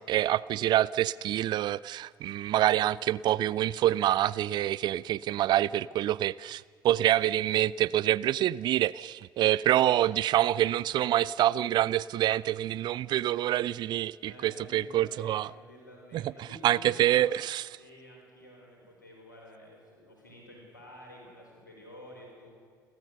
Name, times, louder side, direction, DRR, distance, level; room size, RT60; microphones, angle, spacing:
voice 1, 0.0-15.5 16.1-17.7, right 13 dB, 50° right, 0.5 m, -26 dB
voice 2, 13.9-17.4 17.8-22.5, equal, 85° left, 4.8 m, -51 dB
30.0 x 13.5 x 6.7 m
figure-of-eight pair, 50°, 10 cm